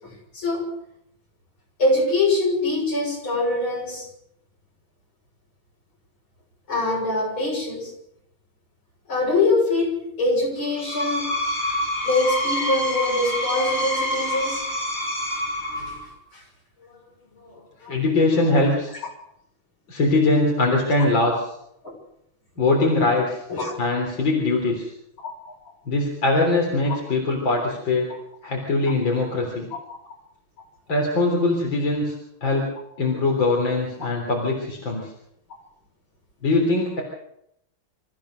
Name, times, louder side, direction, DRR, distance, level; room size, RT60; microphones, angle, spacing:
voice 1, 0.0-0.7 1.8-4.1 6.7-7.9 9.1-11.3 12.0-14.6 15.8-15.9 16.3-16.4 17.8-17.9 23.5-23.7 25.2-25.6 28.1-28.2, left 2 dB, 80° left, -1 dB, 7.4 m, -24 dB
Screech, 10.6-16.1, left 1 dB, 20° right, 6.8 m, -27 dB
voice 2, 17.9-18.9 19.9-21.4 22.6-23.4 23.8-24.9 25.9-28.1 28.4-29.7 30.9-32.1 32.4-32.7 33.0-35.1 36.4-37.0, left 2 dB, 65° left, 0 dB, 4.4 m, -22 dB
27.5 x 14.5 x 6.7 m, 0.76 s
omnidirectional pair, 2.2 m